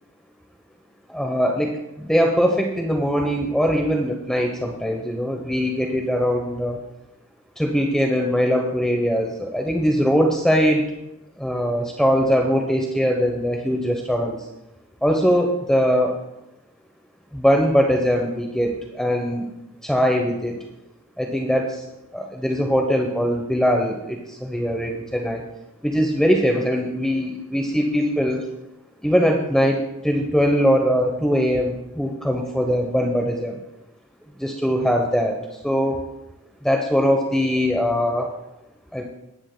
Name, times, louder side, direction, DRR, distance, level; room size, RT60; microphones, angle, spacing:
voice 1, 1.1-1.7 2.0-6.8 7.6-10.8 11.4-14.4 15.0-16.2 17.3-19.5 19.8-20.6 21.2-21.8 22.1-25.4 25.8-28.4 29.0-33.6 34.4-36.0 36.6-38.3 38.9-39.0, equal, 5° left, 1 dB, 0.8 m, -21 dB
19.0 x 9.8 x 2.2 m, 0.93 s
head